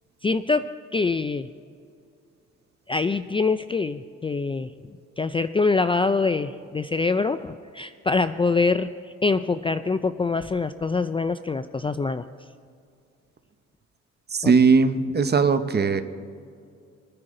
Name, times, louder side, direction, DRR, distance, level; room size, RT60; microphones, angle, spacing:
voice 1, 0.2-1.5 2.9-4.7 5.2-8.9 9.2-12.3 14.4-14.5, left 4 dB, 20° left, 12 dB, 0.4 m, -24 dB
voice 2, 14.3-16.0, right 5 dB, 35° right, 10 dB, 0.9 m, -19 dB
25.0 x 10.0 x 3.8 m, 2.3 s
cardioid pair, 90°, 30 cm